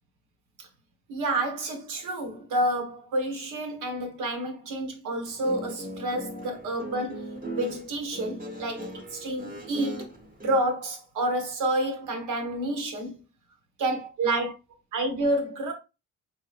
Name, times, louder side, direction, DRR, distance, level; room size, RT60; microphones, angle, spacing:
voice 1, 1.1-8.8 9.1-10.1 10.4-13.2 13.8-14.5 14.9-15.7, right 1 dB, 90° right, 1.2 m, -29 dB
Guitar, 5.3-10.6, right 1 dB, 30° right, 1.0 m, -38 dB
3.9 x 2.7 x 3.3 m
cardioid pair, 90°, 30 cm